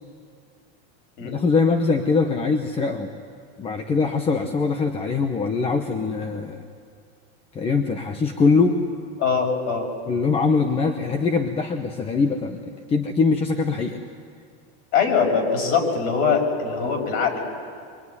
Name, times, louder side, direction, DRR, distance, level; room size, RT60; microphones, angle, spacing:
voice 1, 1.2-3.1 3.6-6.6 7.5-8.8 10.1-14.0, left 4 dB, 20° left, 6 dB, 1.1 m, -22 dB
voice 2, 9.2-9.9 14.9-17.4, left 5 dB, 45° left, 1 dB, 6.3 m, -22 dB
24.5 x 24.0 x 9.8 m, 2.2 s
supercardioid pair, 155°, 32 cm